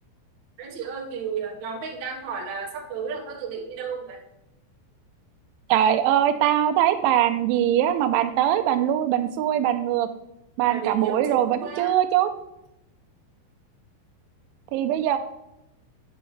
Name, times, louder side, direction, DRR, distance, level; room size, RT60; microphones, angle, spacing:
voice 1, 0.6-4.2 10.7-12.0, right 6 dB, 75° right, -1 dB, 1.7 m, -33 dB
voice 2, 5.7-10.1 10.6-12.3 14.7-15.2, right 11 dB, 90° right, 8 dB, 3.1 m, -22 dB
8.0 x 7.8 x 3.2 m, 0.87 s
omnidirectional pair, 5.4 m